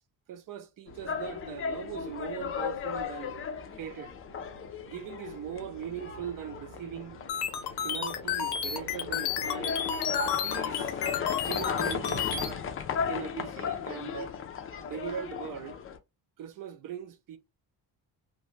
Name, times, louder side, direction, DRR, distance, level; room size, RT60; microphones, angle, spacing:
voice 1, 0.3-3.4 3.8-4.1 4.9-7.2 7.8-9.9 10.4-11.0 11.4-12.6 13.1-14.4 14.8-15.8 16.4-17.4, right 9 dB, 55° right, 0.6 m, -40 dB
sound 1, 0.9-16.0, left 7 dB, 35° left, 0.4 m, -36 dB
sound 2, 0.9-12.8, right 6 dB, 80° right, 0.9 m, -52 dB
sound 3, 7.3-12.5, left 8 dB, 90° left, 0.7 m, -32 dB
2.6 x 2.3 x 3.1 m
cardioid pair, 120°, 38 cm